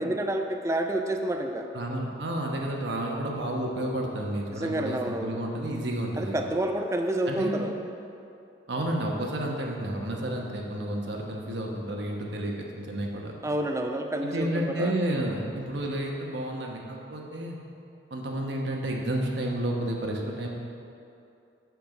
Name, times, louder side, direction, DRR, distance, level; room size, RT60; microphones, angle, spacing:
voice 1, 0.0-1.7 4.5-5.4 6.2-7.8 13.4-14.9, right 1 dB, 15° right, 4 dB, 0.4 m, -29 dB
voice 2, 1.7-6.4 7.3-7.6 8.7-13.3 14.2-17.6 18.1-20.5, right 1 dB, 70° right, 0 dB, 1.0 m, -31 dB
7.0 x 4.5 x 6.5 m, 2.6 s
head